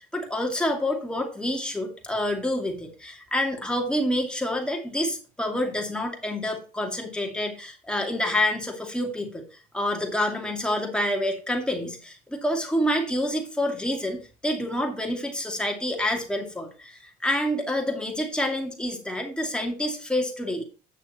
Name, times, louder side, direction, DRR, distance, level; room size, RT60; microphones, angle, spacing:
voice 1, 0.1-9.4 9.7-20.6, left 1 dB, 5° left, 1 dB, 2.4 m, -28 dB
9.2 x 6.5 x 4.4 m, 0.36 s
cardioid pair, 110°, 17 cm